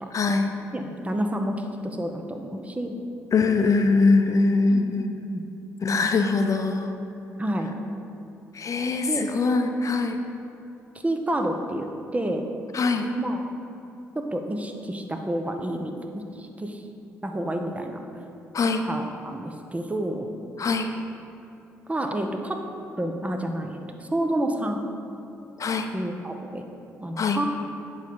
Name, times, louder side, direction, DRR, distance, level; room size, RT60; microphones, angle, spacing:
voice 1, 0.1-0.5 3.3-5.1 5.8-6.9 8.5-10.2 12.7-13.1 18.5-18.9 20.6-20.9 25.6-25.9 27.2-27.4, left 3 dB, 45° left, 6 dB, 0.8 m, -22 dB
voice 2, 0.7-3.0 4.7-5.5 7.4-7.7 9.0-9.2 11.0-12.5 13.2-13.4 14.1-16.8 17.2-18.0 18.8-20.3 21.9-22.6 23.0-24.8 25.9-26.6 27.0-27.5, right 1 dB, 15° right, 4 dB, 0.9 m, -29 dB
9.1 x 5.1 x 5.4 m, 2.7 s
hypercardioid pair, 45°, 8 cm